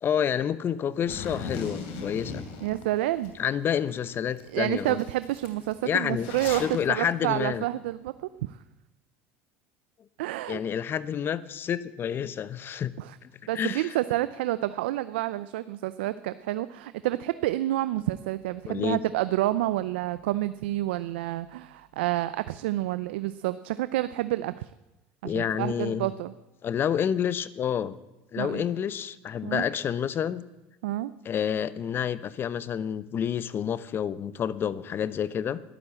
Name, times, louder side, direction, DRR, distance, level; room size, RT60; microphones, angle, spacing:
voice 1, 0.0-2.4 3.4-5.0 5.8-7.6 10.5-12.9 13.2-13.9 18.7-19.0 25.2-26.1 26.6-27.9 28.3-30.4 31.2-35.6, left 8 dB, 40° left, 17 dB, 0.8 m, -29 dB
Zipper (clothing), 1.1-3.3 3.8-3.9 4.4-4.5 4.7-6.8, left 4 dB, 75° left, 3.1 m, -38 dB
voice 2, 2.6-3.3 4.5-8.6 10.2-10.6 13.0-13.2 13.5-24.7 25.2-26.3 28.4-28.6 29.4-29.6 30.8-31.1, right 15 dB, 85° right, 14 dB, 0.5 m, -29 dB
12.5 x 11.5 x 7.5 m, 1.0 s
supercardioid pair, 95°, 6 cm